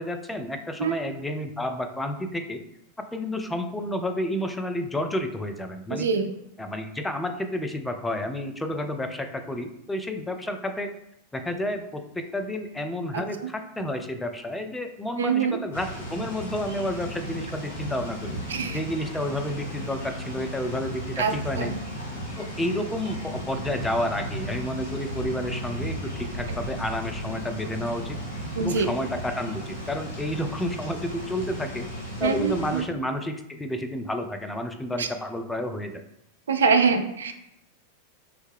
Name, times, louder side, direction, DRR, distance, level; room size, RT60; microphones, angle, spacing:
voice 1, 0.0-2.6 3.0-6.1 6.6-10.9 11.3-18.4 18.7-21.7 22.4-28.2 28.6-31.9 32.2-36.0, left 1 dB, 10° left, 6 dB, 0.4 m, -30 dB
voice 2, 5.9-6.3 13.1-13.5 15.2-15.6 18.5-18.8 21.2-21.8 28.6-28.9 32.2-32.9 35.0-35.1 36.5-37.3, right 5 dB, 65° right, 6 dB, 0.4 m, -24 dB
sound 1, 15.7-32.8, equal, 65° left, 1.4 m, -35 dB
4.5 x 2.1 x 3.3 m, 0.81 s
figure-of-eight pair, 90°, 0 cm